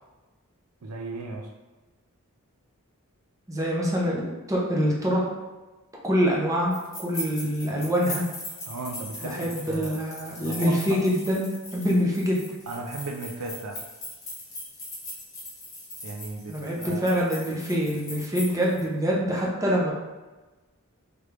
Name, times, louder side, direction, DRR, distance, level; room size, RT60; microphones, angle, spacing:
voice 1, 0.8-1.5 8.7-10.0 10.4-10.8 12.7-13.8 16.0-17.2, right 3 dB, 80° right, 3 dB, 0.5 m, -36 dB
voice 2, 3.5-5.2 6.0-8.2 9.2-12.4 16.5-19.9, equal, 15° right, -3 dB, 0.7 m, -25 dB
sound 1, 6.7-18.8, left 1 dB, 15° left, 1.3 m, -40 dB
3.6 x 3.4 x 3.2 m, 1.2 s
head